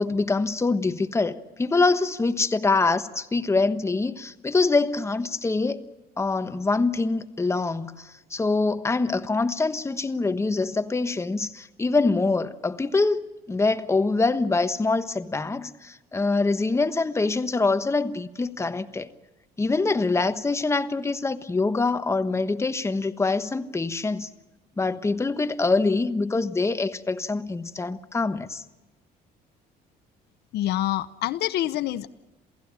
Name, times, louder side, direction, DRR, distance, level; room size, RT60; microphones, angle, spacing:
voice 1, 0.0-5.8 6.2-13.2 13.5-19.1 19.6-24.3 24.8-28.6, left 3 dB, 15° left, 1.2 m, -24 dB
voice 2, 30.5-32.1, left 14 dB, 75° left, 0.8 m, -26 dB
28.0 x 16.5 x 8.8 m
cardioid pair, 110°, 17 cm